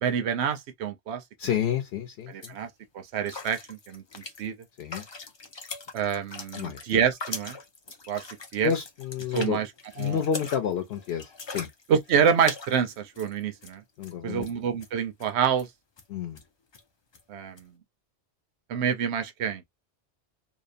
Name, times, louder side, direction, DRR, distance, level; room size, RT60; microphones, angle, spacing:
voice 1, 0.0-1.2 2.3-2.7 2.9-4.0 4.4-4.5 5.9-7.6 8.1-8.2 8.5-8.7 9.3-9.7 10.0-10.2 11.9-13.8 14.2-15.7 17.3-17.7 18.7-19.6, right 7 dB, 85° right, 0.9 m, -27 dB
voice 2, 1.4-2.5 4.8-5.0 6.5-6.8 8.6-9.6 10.0-11.7 14.0-14.5 16.1-16.4, left 8 dB, 70° left, 0.8 m, -29 dB
sound 1, 1.8-1.9 2.2-2.6 3.3-13.8 14.0-14.1 14.4-14.9 15.2-15.3 15.6-15.7 16.0-16.1 16.4-16.5 16.7-16.8 17.1-17.2 17.6-17.7, left 4 dB, 45° left, 0.3 m, -41 dB
2.8 x 2.0 x 2.4 m
omnidirectional pair, 1.1 m